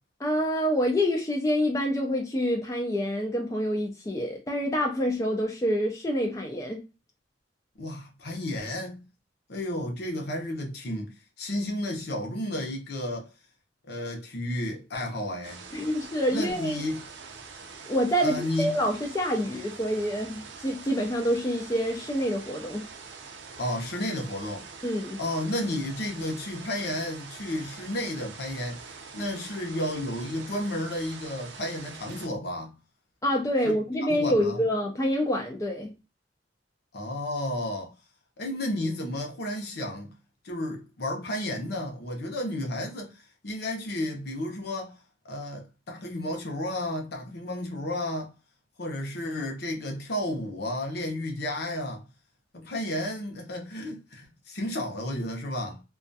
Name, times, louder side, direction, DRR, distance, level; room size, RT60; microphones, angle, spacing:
voice 1, 0.2-6.8 15.7-16.8 17.8-22.8 24.8-25.2 33.2-35.9, equal, 15° left, 0.4 m, -27 dB
voice 2, 7.8-9.0 9.5-13.3 13.9-15.6 16.3-17.1 18.2-18.8 23.6-24.7 25.2-28.8 29.1-32.7 33.6-33.7 34.1-34.6 36.9-37.9 38.4-40.1 40.4-44.9 45.2-48.3 48.8-52.0 52.5-55.8, left 1 dB, 60° left, 0.7 m, -32 dB
sound 1, 15.4-32.3, right 5 dB, 65° right, 0.5 m, -44 dB
2.3 x 2.3 x 2.6 m
head